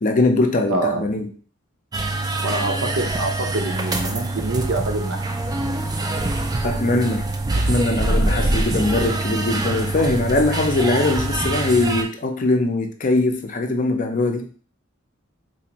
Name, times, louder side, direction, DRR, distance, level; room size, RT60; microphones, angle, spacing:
voice 1, 0.0-1.3 6.6-7.2 7.6-14.5, left 2 dB, 40° left, 4 dB, 0.5 m, -21 dB
voice 2, 0.7-1.1 2.4-5.2, right 2 dB, 70° right, 3 dB, 0.6 m, -25 dB
sound 1, 1.9-12.0, right 2 dB, 20° right, 0.3 m, -24 dB
4.1 x 2.5 x 2.9 m, 0.42 s
head